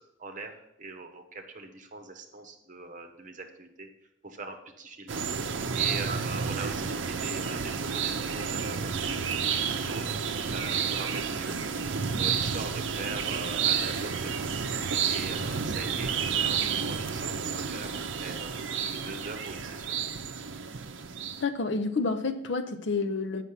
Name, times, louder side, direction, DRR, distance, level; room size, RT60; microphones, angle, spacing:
voice 1, 0.2-3.9 4.2-5.1 5.7-11.6 12.1-14.7 15.1-17.9 18.2-18.5 18.9-20.0, right 3 dB, 40° right, 5 dB, 1.0 m, -42 dB
sound 1, 5.1-21.4, right 6 dB, 65° right, 0.6 m, -30 dB
voice 2, 21.4-23.4, left 4 dB, 60° left, 10 dB, 0.6 m, -29 dB
8.3 x 5.9 x 5.8 m, 0.82 s
head